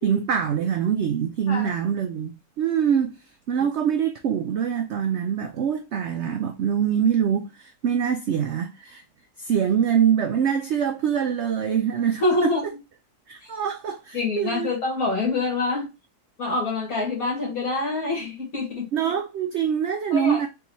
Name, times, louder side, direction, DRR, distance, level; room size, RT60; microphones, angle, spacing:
voice 1, 0.0-2.3 2.6-3.2 3.5-9.0 9.4-12.5 13.3-14.7 18.9-20.5, right 8 dB, 65° right, 0.7 m, -24 dB
voice 2, 12.2-12.6 13.4-13.5 14.1-15.9 16.4-18.9 20.1-20.5, left 3 dB, 60° left, 2.2 m, -26 dB
4.0 x 3.5 x 3.0 m
omnidirectional pair, 1.7 m